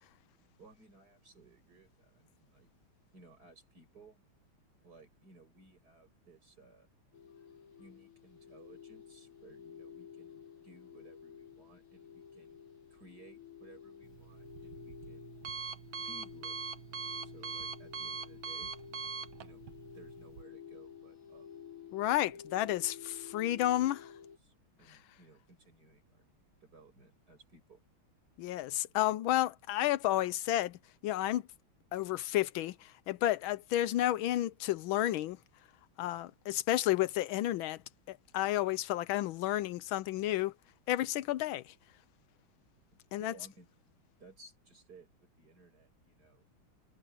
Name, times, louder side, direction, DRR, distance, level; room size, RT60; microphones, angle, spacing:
voice 1, 0.6-2.7 3.1-4.2 4.8-6.9 7.8-12.6 12.9-15.3 16.0-18.7 19.4-19.7 19.9-21.5 22.3-22.4 22.7-23.0 23.3-23.7 24.1-26.3 26.6-27.8 43.2-43.7 44.2-46.5, right 3 dB, 50° right, 7.4 m, -59 dB
sound 1, 7.1-24.4, left 8 dB, 50° left, 1.2 m, -52 dB
Alarm, 14.0-20.4, right 5 dB, 75° right, 2.0 m, -43 dB
voice 2, 21.9-24.1 24.9-25.0 28.4-31.4 31.9-35.4 36.0-37.8 38.1-40.5 40.9-41.7 43.1-43.3, left 14 dB, 80° left, 1.4 m, -31 dB
omnidirectional pair, 2.3 m